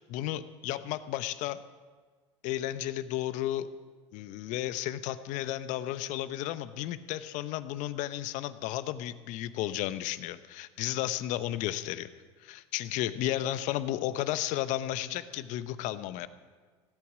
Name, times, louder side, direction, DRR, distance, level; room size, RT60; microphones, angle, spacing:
voice 1, 0.0-1.6 2.4-3.7 4.1-12.1 12.4-16.3, left 13 dB, 55° left, 13 dB, 0.9 m, -33 dB
16.5 x 8.6 x 8.7 m, 1.5 s
hypercardioid pair, 80°, 15 cm